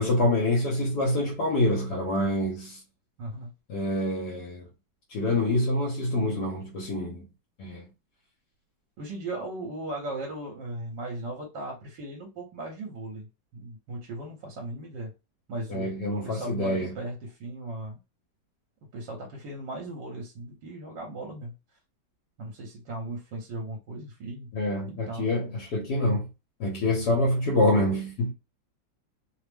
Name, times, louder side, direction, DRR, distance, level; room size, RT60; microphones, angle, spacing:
voice 1, 0.0-2.8 3.7-4.6 5.1-7.2 7.6-7.9 15.7-17.0 24.5-26.3 26.6-28.3, left 1 dB, 65° left, 1.3 m, -26 dB
voice 2, 3.2-3.5 9.0-13.3 13.5-15.1 15.5-15.9 16.2-18.0 18.9-21.5 22.4-24.5 24.9-25.3, right 2 dB, 75° right, 1.5 m, -37 dB
3.2 x 2.0 x 3.3 m
omnidirectional pair, 2.0 m